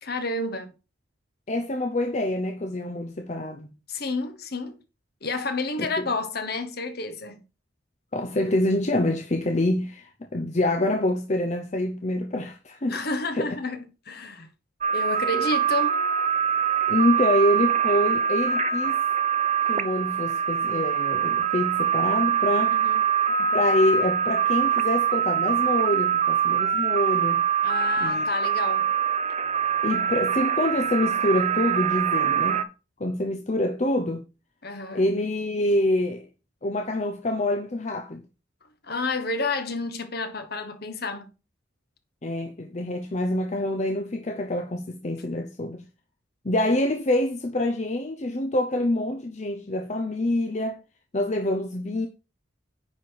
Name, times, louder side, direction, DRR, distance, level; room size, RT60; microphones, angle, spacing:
voice 1, 0.0-0.7 3.9-4.8 5.2-7.4 12.9-14.5 14.9-16.0 22.7-23.0 27.6-28.9 34.6-35.1 38.8-41.3, left 2 dB, 55° left, 1.4 m, -30 dB
voice 2, 1.5-3.7 6.0-6.1 8.1-13.0 13.3-13.6 16.9-19.0 19.7-22.8 23.4-27.4 28.0-28.3 29.8-32.6 33.0-34.3 34.9-36.3 36.6-38.2 42.2-45.8 46.4-50.8 51.1-52.1, left 1 dB, 40° left, 0.7 m, -26 dB
sound 1, 14.8-32.6, right 8 dB, 40° right, 0.7 m, -24 dB
9.7 x 4.4 x 4.7 m
head